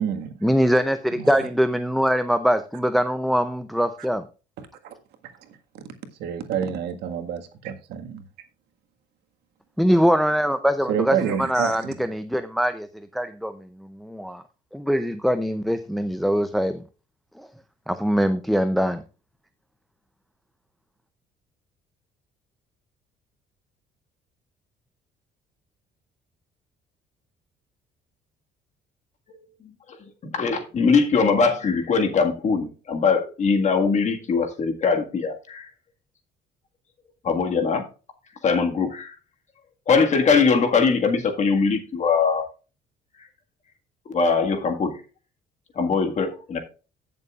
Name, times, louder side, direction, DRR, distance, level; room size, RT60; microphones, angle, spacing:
voice 1, 0.4-4.2 9.8-12.9 13.1-13.5 14.0-14.4 14.7-16.8 17.9-19.0, equal, ahead, 0.5 m, -22 dB
voice 2, 1.1-1.5 4.8-4.9 6.2-8.2 10.9-11.9, right 8 dB, 80° right, 1.7 m, -28 dB
voice 3, 30.2-35.7 37.2-37.9 38.4-39.1 39.9-42.4 44.1-44.9 45.8-46.6, left 5 dB, 45° left, 1.8 m, -21 dB
16.5 x 6.9 x 2.4 m
cardioid pair, 110°, 17 cm